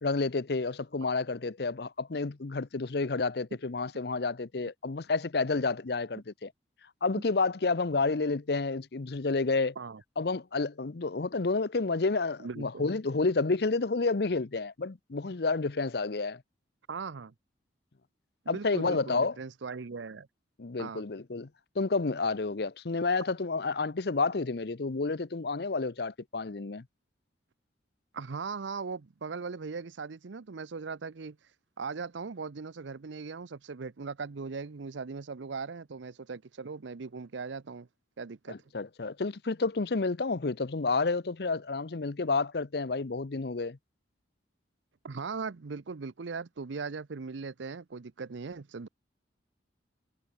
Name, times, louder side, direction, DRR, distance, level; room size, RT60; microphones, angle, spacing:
voice 1, 0.0-6.5 7.0-9.7 10.2-16.4 18.5-19.4 20.6-21.5 21.8-26.8 38.5-43.8, left 3 dB, 55° left, 0.7 m, -30 dB
voice 2, 12.4-12.8 16.9-17.3 18.4-20.3 20.8-21.0 28.1-31.4 31.8-37.9 38.2-38.6 45.0-48.9, right 4 dB, 80° right, 0.6 m, -39 dB
head